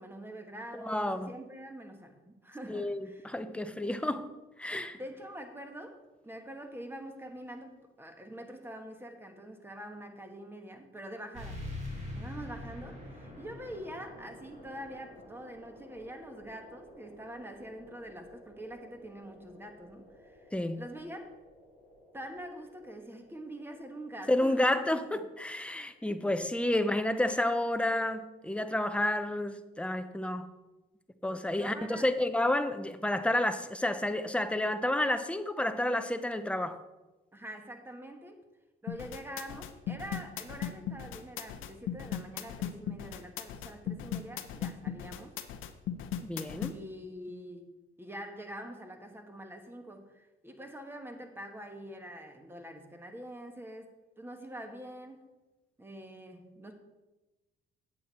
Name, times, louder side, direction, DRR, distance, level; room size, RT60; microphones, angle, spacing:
voice 1, 0.0-3.3 3.8-3.9 4.9-11.6 12.2-21.3 22.1-25.0 31.5-32.1 37.3-38.4 38.8-45.4 46.7-47.7 48.0-55.3 55.8-56.7, right 1 dB, 10° right, 5 dB, 1.4 m, -45 dB
voice 2, 0.9-1.3 2.7-4.3 4.6-5.0 20.5-20.8 24.3-30.5 31.2-36.8 46.2-46.7, left 1 dB, 5° left, 10 dB, 0.6 m, -30 dB
sound 1, 11.3-26.4, left 1 dB, 35° right, 2.9 m, -48 dB
sound 2, 38.9-46.7, left 9 dB, 80° left, 0.7 m, -37 dB
8.5 x 7.6 x 4.1 m, 1.1 s
cardioid pair, 90°, 20 cm